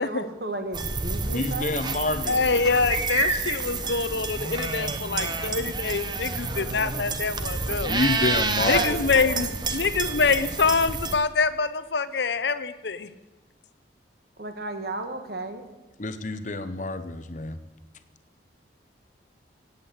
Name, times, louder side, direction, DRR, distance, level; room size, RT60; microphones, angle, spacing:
voice 1, 0.0-1.8 3.8-3.9 5.5-5.7 6.4-6.9 8.6-9.5 14.4-15.7, right 2 dB, 55° right, 6 dB, 1.7 m, -34 dB
sound 1, 0.7-11.2, right 3 dB, 25° right, 1.0 m, -29 dB
voice 2, 1.3-2.8 7.8-8.9 9.2-9.4 16.0-17.6, left 2 dB, 45° left, 11 dB, 0.9 m, -28 dB
voice 3, 2.3-7.9 8.6-9.5 9.7-13.1, left 4 dB, 75° left, 13 dB, 0.8 m, -25 dB
17.0 x 8.4 x 8.4 m, 1.1 s
head